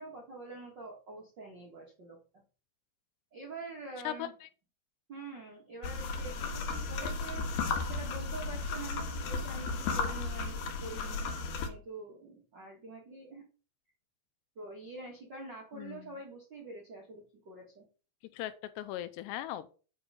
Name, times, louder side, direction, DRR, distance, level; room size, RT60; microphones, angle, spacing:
voice 1, 0.0-2.4 3.3-4.3 5.1-7.4 7.8-11.4 11.6-13.5 14.5-17.8, right 3 dB, 75° right, 1.0 m, -46 dB
voice 2, 4.0-4.5 15.7-16.0 18.3-19.7, left 13 dB, 85° left, 2.7 m, -39 dB
sound 1, 5.8-11.7, left 4 dB, 65° left, 2.3 m, -34 dB
7.9 x 6.3 x 5.5 m
omnidirectional pair, 5.1 m